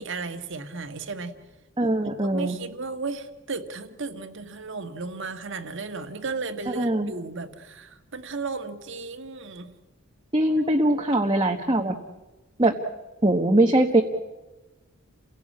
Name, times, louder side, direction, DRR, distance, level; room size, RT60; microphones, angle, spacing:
voice 1, 0.0-1.3 2.2-9.7 10.9-11.3, right 4 dB, 65° right, 8 dB, 1.8 m, -34 dB
voice 2, 1.8-2.6 6.8-7.1 10.3-11.9 12.6-12.7 13.2-14.0, right 1 dB, 25° right, 2 dB, 1.3 m, -21 dB
29.0 x 17.0 x 8.6 m, 1.1 s
head